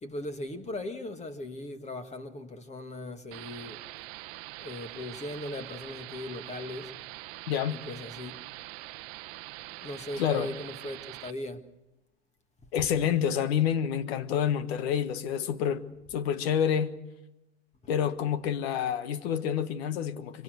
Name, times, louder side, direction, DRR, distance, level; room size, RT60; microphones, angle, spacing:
voice 1, 0.0-3.8 4.6-6.9 7.7-8.3 9.7-11.6, left 1 dB, 20° left, 2.0 m, -38 dB
sound 1, 3.3-11.3, right 19 dB, 55° right, 0.9 m, -44 dB
voice 2, 7.5-7.8 10.2-10.5 12.7-15.8 16.1-16.9 17.9-20.4, left 9 dB, 65° left, 1.6 m, -28 dB
25.0 x 24.5 x 6.5 m
hypercardioid pair, 95°, 34 cm